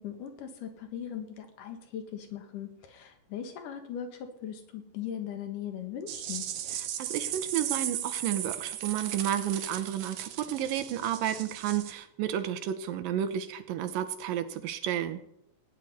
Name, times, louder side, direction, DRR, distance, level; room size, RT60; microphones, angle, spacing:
voice 1, 0.0-6.4, left 9 dB, 70° left, 6 dB, 3.0 m, -39 dB
sound 1, 6.1-11.9, right 10 dB, 70° right, 1.6 m, -36 dB
voice 2, 7.0-15.2, right 10 dB, 90° right, 10 dB, 2.6 m, -31 dB
16.5 x 10.0 x 4.2 m, 0.78 s
omnidirectional pair, 3.9 m